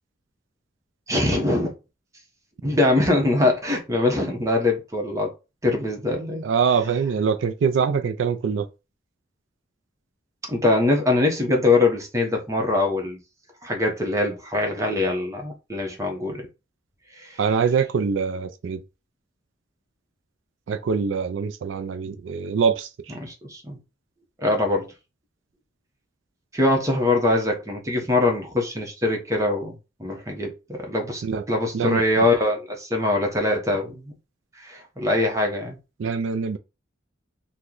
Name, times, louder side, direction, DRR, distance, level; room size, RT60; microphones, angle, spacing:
voice 1, 1.1-1.7 2.6-5.3 5.6-6.4 10.5-13.2 13.6-16.5 17.2-17.4 23.2-23.8 24.4-24.9 26.5-29.7 30.0-31.2 31.5-34.1 34.6-35.8, left 2 dB, 15° right, 0.8 m, -23 dB
voice 2, 6.4-8.7 17.4-18.8 20.7-23.1 31.2-31.4 31.7-32.0 36.0-36.6, right 6 dB, 80° right, 0.4 m, -24 dB
3.0 x 2.2 x 3.7 m
head